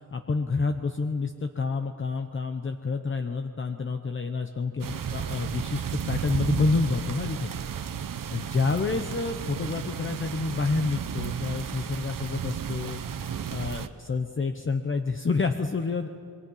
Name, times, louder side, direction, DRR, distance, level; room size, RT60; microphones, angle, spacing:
voice 1, 0.0-7.5 8.3-13.0 13.5-16.1, left 4 dB, 35° left, 6 dB, 0.9 m, -28 dB
sound 1, 4.8-13.9, right 8 dB, 75° right, 1.0 m, -33 dB
27.5 x 22.5 x 5.6 m, 2.4 s
wide cardioid pair, 155°, 33 cm